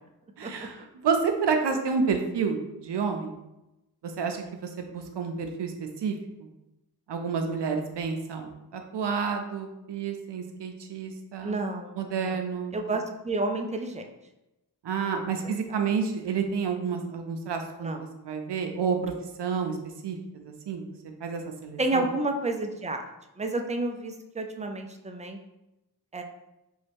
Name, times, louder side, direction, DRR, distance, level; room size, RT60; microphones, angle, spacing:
voice 1, 0.4-3.3 4.0-6.1 6.4-6.5 7.1-11.6 12.0-12.8 14.8-19.1 19.4-19.8 20.0-20.9 21.2-22.1, right 5 dB, 85° right, 5 dB, 0.5 m, -30 dB
voice 2, 11.4-12.4 12.7-14.0 15.4-15.5 17.8-18.0 21.8-23.0 23.4-25.4 26.1-26.2, right 2 dB, 20° right, 5 dB, 0.3 m, -30 dB
3.0 x 2.7 x 3.4 m, 0.94 s
wide cardioid pair, 80°, 40 cm